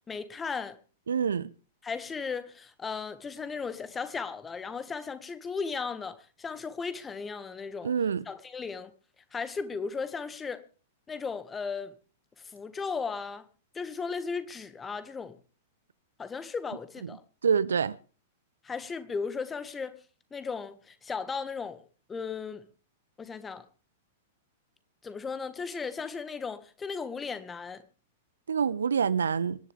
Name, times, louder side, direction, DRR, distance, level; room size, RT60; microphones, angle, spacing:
voice 1, 0.1-0.8 1.8-7.9 8.3-8.9 9.3-10.6 11.1-11.9 12.4-13.4 13.7-15.4 16.2-17.2 18.6-19.9 20.3-22.7 23.2-23.7 25.0-27.8, left 5 dB, 15° left, 1.7 m, -36 dB
voice 2, 1.1-1.5 7.8-8.2 17.4-18.0 28.5-29.6, right 6 dB, 70° right, 0.7 m, -26 dB
26.0 x 11.0 x 3.5 m
figure-of-eight pair, 100°, 0 cm